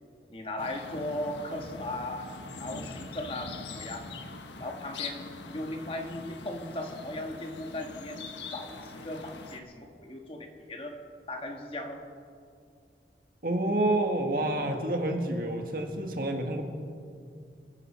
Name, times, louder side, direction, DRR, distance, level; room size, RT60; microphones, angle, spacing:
voice 1, 0.3-4.1 4.6-11.0 11.3-12.0, left 1 dB, 30° left, 3 dB, 1.5 m, -37 dB
sound 1, 0.6-9.6, left 4 dB, 85° left, 1.2 m, -43 dB
voice 2, 13.4-16.6, right 1 dB, 50° right, 3 dB, 1.7 m, -28 dB
27.5 x 11.0 x 4.4 m, 2.3 s
head